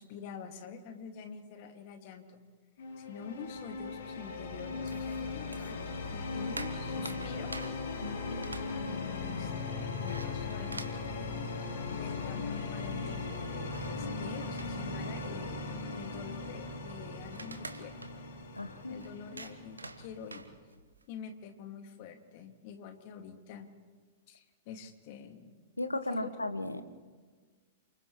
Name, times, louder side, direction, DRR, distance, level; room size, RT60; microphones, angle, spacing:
voice 1, 0.0-2.4 3.0-7.7 8.5-9.0 9.3-10.9 11.9-15.5 15.9-18.0 18.9-20.5 21.1-23.7 24.3-25.6 26.1-26.3, left 7 dB, 45° left, 5 dB, 2.3 m, -47 dB
sound 1, 2.8-20.5, left 4 dB, 65° left, 3.7 m, -38 dB
sound 2, 4.9-5.9 6.2-12.1 12.4-12.5 12.7-21.0, right 3 dB, 85° right, 1.3 m, -49 dB
voice 2, 8.0-8.5 18.6-19.0 25.8-26.8, left 1 dB, 90° left, 10 dB, 1.3 m, -36 dB
29.5 x 27.5 x 3.2 m, 1.5 s
figure-of-eight pair, 105°, 0 cm